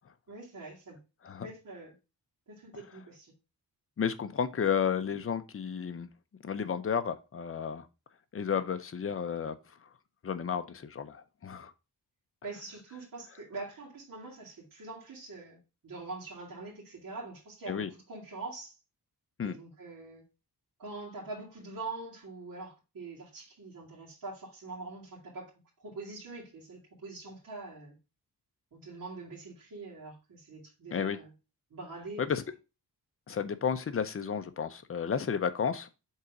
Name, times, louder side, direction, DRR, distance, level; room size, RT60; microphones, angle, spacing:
voice 1, 0.3-1.0 1.4-1.9 2.5-3.3 12.4-18.7 19.4-20.2 20.8-25.5 25.8-28.0 28.7-31.3 31.7-32.3, right 3 dB, 60° right, 2.4 m, -44 dB
voice 2, 4.0-6.1 6.4-7.9 8.3-9.6 10.2-11.7 17.7-17.9 19.4-19.6 30.9-31.2 32.2-32.4 33.3-35.9, left 7 dB, 35° left, 0.6 m, -32 dB
5.5 x 4.0 x 4.8 m
wide cardioid pair, 165°, 38 cm